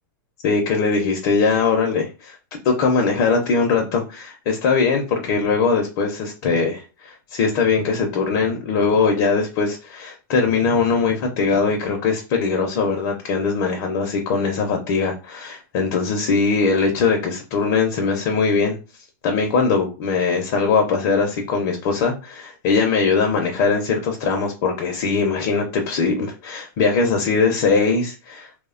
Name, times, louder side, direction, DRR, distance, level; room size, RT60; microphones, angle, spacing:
voice 1, 0.4-2.4 2.6-18.8 19.2-28.5, left 4 dB, 45° left, 2 dB, 0.5 m, -21 dB
2.9 x 2.0 x 2.4 m, 0.33 s
supercardioid pair, 160°, 11 cm